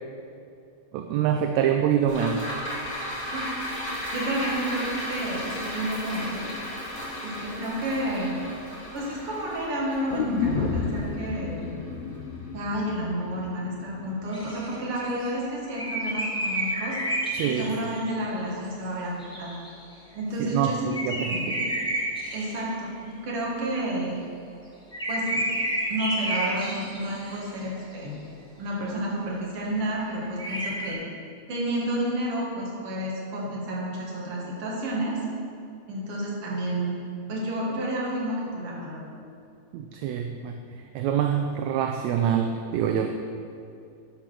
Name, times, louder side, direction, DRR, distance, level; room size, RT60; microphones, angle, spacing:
voice 1, 0.9-2.4 17.3-17.7 20.4-21.6 39.7-40.6 41.0-43.1, right 8 dB, 80° right, 5 dB, 1.8 m, -25 dB
sound 1, 2.1-12.6 13.0-13.1, left 1 dB, 30° left, 2.4 m, -35 dB
voice 2, 4.1-6.5 7.2-8.4 8.9-11.7 12.5-17.0 17.4-19.1 19.4-19.6 20.1-21.7 22.3-23.0 23.2-24.2 25.1-25.4 25.9-28.2 28.6-31.0 31.5-35.2 35.9-37.0 37.3-39.0, right 1 dB, 55° right, -4 dB, 2.5 m, -30 dB
sound 2, 10.1-14.1 14.4-14.5, left 5 dB, 75° left, 1.9 m, -31 dB
sound 3, 14.3-15.3 15.7-18.1 19.2-19.9 20.6-20.7 20.9-22.9 24.9-27.7 30.4-30.9, right 1 dB, ahead, 1.1 m, -30 dB
10.5 x 5.1 x 6.1 m, 2.5 s
omnidirectional pair, 3.3 m